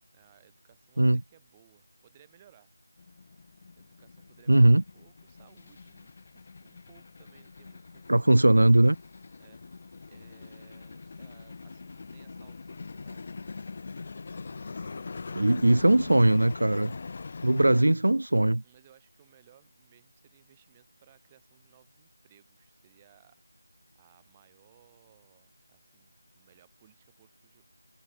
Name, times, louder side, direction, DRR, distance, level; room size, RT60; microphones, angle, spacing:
voice 1, 0.1-2.7 3.8-8.4 9.4-9.6 10.1-16.4 18.6-23.4 23.9-27.7, right 11 dB, 15° right, 5.9 m, -62 dB
sound 1, 3.0-17.8, left 4 dB, 35° left, 3.7 m, -43 dB
voice 2, 4.5-4.8 8.1-9.0 15.3-16.9 17.4-18.6, right 1 dB, 65° right, 0.6 m, -20 dB
figure-of-eight pair, 165°, 0 cm